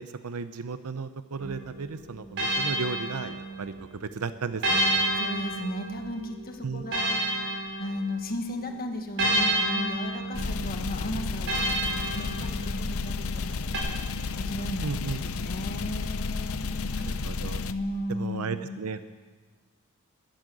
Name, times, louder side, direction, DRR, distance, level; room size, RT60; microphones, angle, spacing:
voice 1, 0.0-5.1 6.6-6.9 14.8-15.2 17.1-17.6 18.1-19.0, right 4 dB, 80° right, 11 dB, 0.6 m, -35 dB
sound 1, 1.4-3.9 4.6-8.4 9.2-13.0 13.7-13.8, right 1 dB, 55° right, 4.8 m, -30 dB
voice 2, 5.2-7.5 7.8-13.7 14.3-17.1 17.6-18.8, left 1 dB, 45° left, 5 dB, 1.5 m, -35 dB
sound 2, 10.3-17.7, left 4 dB, 70° left, 0.6 m, -32 dB
12.5 x 11.5 x 9.6 m, 1.4 s
head